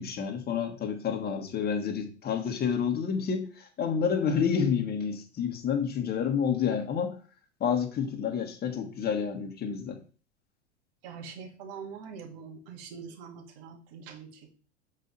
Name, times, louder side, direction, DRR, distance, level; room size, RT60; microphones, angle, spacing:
voice 1, 0.0-7.1 7.6-10.0, left 7 dB, 25° left, 5 dB, 1.7 m, -29 dB
voice 2, 11.0-14.5, right 6 dB, 55° right, 4 dB, 2.2 m, -44 dB
8.1 x 4.4 x 4.1 m, 0.38 s
figure-of-eight pair, 90°, 35 cm